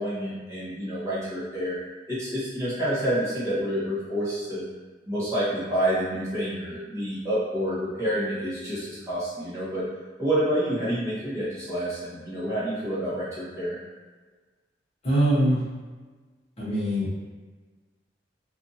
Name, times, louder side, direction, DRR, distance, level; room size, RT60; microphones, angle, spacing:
voice 1, 0.0-1.8 2.1-4.6 5.1-9.8 10.2-13.8, equal, 15° right, -11 dB, 0.9 m, -28 dB
voice 2, 15.0-15.6 16.6-17.2, right 1 dB, 35° left, -9 dB, 0.9 m, -23 dB
2.6 x 2.4 x 2.6 m, 1.3 s
head